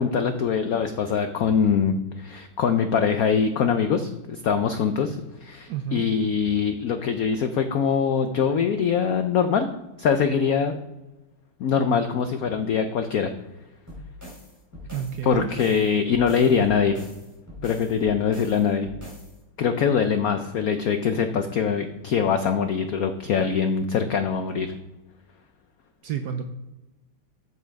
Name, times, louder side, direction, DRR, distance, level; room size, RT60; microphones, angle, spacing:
voice 1, 0.0-9.7 10.0-10.7 11.6-13.3 15.2-17.0 17.6-18.9 19.6-24.7, left 6 dB, 80° left, 8 dB, 0.7 m, -23 dB
voice 2, 5.7-6.1 14.9-15.5 26.0-26.4, right 9 dB, 70° right, 7 dB, 1.0 m, -30 dB
sound 1, 13.9-19.4, left 1 dB, 10° right, 3.3 m, -42 dB
8.2 x 7.5 x 4.6 m, 1.0 s
omnidirectional pair, 2.3 m